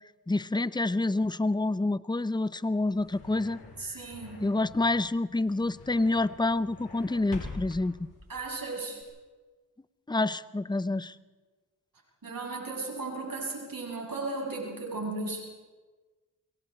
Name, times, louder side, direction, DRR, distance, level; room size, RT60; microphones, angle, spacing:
voice 1, 0.3-4.0 4.4-8.1 10.1-11.1, left 2 dB, 10° left, 16 dB, 0.7 m, -28 dB
sound 1, 2.6-9.0, left 3 dB, 75° left, 4.7 m, -46 dB
voice 2, 3.8-4.4 8.3-9.0 12.2-15.5, right 3 dB, 60° right, -1 dB, 7.9 m, -35 dB
27.0 x 23.5 x 4.4 m, 1.3 s
cardioid pair, 40°, 39 cm